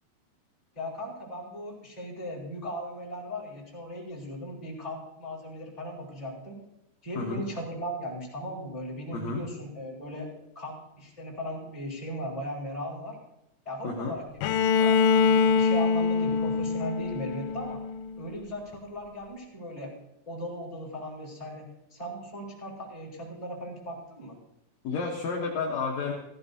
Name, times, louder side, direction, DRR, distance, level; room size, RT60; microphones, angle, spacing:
voice 1, 0.7-6.6 7.0-10.3 10.5-13.2 13.6-17.8 18.2-19.9 20.3-21.6 21.9-24.3, equal, 10° left, -6 dB, 4.2 m, -37 dB
voice 2, 9.1-9.4 13.8-14.1 24.8-26.1, left 4 dB, 65° left, -2 dB, 1.8 m, -31 dB
Bowed string instrument, 14.4-18.3, left 5 dB, 85° left, 2.8 m, -24 dB
16.5 x 16.0 x 2.8 m, 0.82 s
omnidirectional pair, 4.8 m